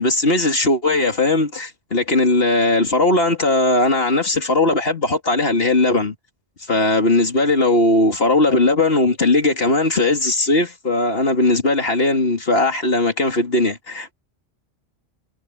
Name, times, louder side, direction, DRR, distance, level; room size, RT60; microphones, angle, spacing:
voice 1, 0.0-6.1 6.7-14.1, left 2 dB, 60° left, 3.0 m, -18 dB
omnidirectional pair, 1.1 m